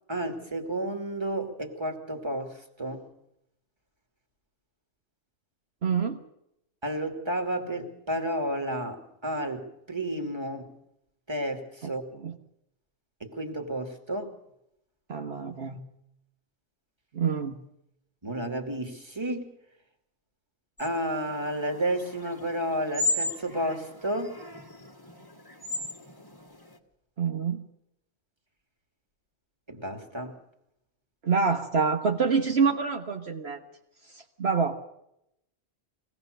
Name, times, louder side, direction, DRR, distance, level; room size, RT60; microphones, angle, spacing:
voice 1, 0.1-3.0 6.8-10.7 11.3-12.0 13.2-14.3 18.2-19.5 20.8-24.4 29.7-30.3, right 1 dB, 25° right, 4 dB, 2.7 m, -31 dB
voice 2, 5.8-6.2 11.8-12.4 15.1-15.8 17.1-17.6 27.2-27.6 31.2-33.6 34.1-34.8, right 5 dB, 65° right, 4 dB, 1.5 m, -27 dB
sound 1, 20.8-26.8, left 2 dB, 20° left, 1.6 m, -35 dB
23.0 x 18.0 x 6.7 m, 0.80 s
omnidirectional pair, 1.2 m